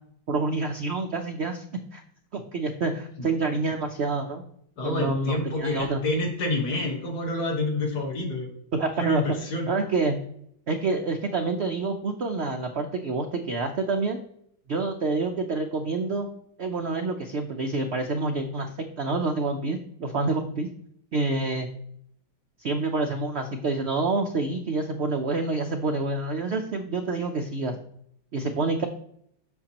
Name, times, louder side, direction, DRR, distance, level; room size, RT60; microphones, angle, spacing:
voice 1, 0.3-2.0 2.3-4.4 4.8-6.0 8.7-9.2 9.7-10.2 10.7-14.2 14.7-16.3 16.6-18.7 19.0-20.7 21.1-21.7 22.6-27.8 28.3-28.9, right 3 dB, 85° right, 5 dB, 0.5 m, -27 dB
voice 2, 4.8-8.5 9.0-9.7, left 2 dB, 60° left, 1 dB, 2.0 m, -28 dB
7.8 x 6.3 x 2.9 m, 0.69 s
omnidirectional pair, 2.0 m